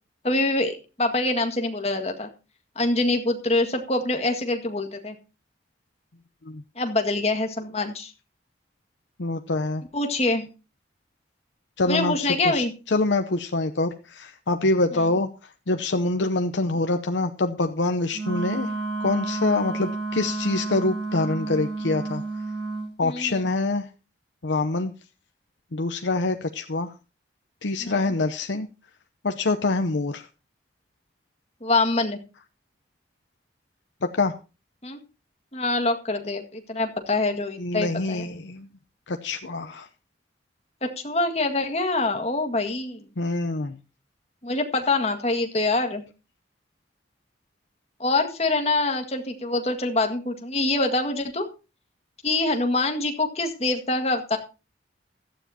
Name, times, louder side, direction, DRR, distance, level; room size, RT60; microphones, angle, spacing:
voice 1, 0.2-2.3 2.8-5.2 6.8-8.1 9.9-10.5 11.9-12.7 23.0-23.4 27.8-28.1 31.6-32.2 34.8-35.0 35.5-38.3 40.8-43.0 44.4-46.0 48.0-51.5 52.2-54.4, left 2 dB, 35° left, 5 dB, 1.9 m, -25 dB
voice 2, 9.2-9.8 11.8-15.3 15.7-18.7 19.0-22.2 23.0-23.9 24.4-24.9 25.7-26.9 27.6-28.7 29.2-30.3 34.0-34.4 37.6-38.7 39.1-39.9 43.2-43.8, left 2 dB, 80° left, 7 dB, 0.8 m, -25 dB
Wind instrument woodwind instrument, 18.1-22.9, right 3 dB, 75° right, 7.2 m, -30 dB
16.5 x 12.5 x 2.8 m, 0.31 s
head